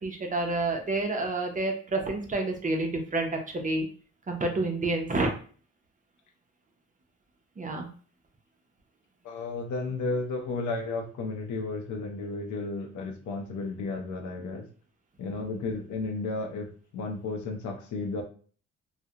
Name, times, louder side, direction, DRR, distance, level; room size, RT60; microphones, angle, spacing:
voice 1, 0.0-3.9 4.3-5.3 7.6-7.9, right 2 dB, 25° right, 3 dB, 0.5 m, -29 dB
voice 2, 9.2-14.7 15.2-16.7 16.9-18.2, left 3 dB, 70° left, 3 dB, 0.6 m, -33 dB
2.3 x 2.1 x 2.8 m, 0.42 s
cardioid pair, 90°, 30 cm